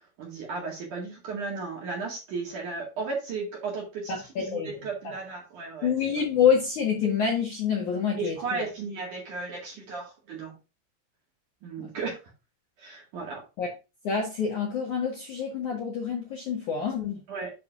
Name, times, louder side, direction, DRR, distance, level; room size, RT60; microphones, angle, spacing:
voice 1, 0.2-4.1 4.5-5.9 8.2-10.5 11.6-12.2 12.8-13.4 17.3-17.5, right 4 dB, 50° right, -2 dB, 2.8 m, -35 dB
voice 2, 4.4-4.7 5.8-8.7 11.8-11.9 13.6-13.7 14.0-17.2, left 7 dB, 55° left, -2 dB, 2.3 m, -27 dB
9.7 x 6.7 x 2.6 m, 0.28 s
omnidirectional pair, 5.6 m